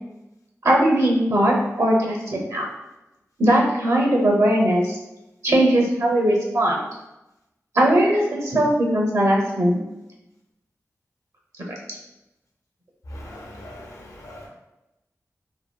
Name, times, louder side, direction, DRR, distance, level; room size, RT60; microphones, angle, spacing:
voice 1, 0.6-2.7 3.4-5.0 5.4-6.8 7.7-9.8, right 1 dB, 70° right, -1 dB, 0.8 m, -19 dB
voice 2, 13.1-14.5, left 1 dB, 75° left, -2 dB, 0.7 m, -40 dB
2.8 x 2.6 x 2.3 m, 0.94 s
wide cardioid pair, 100°, 6 cm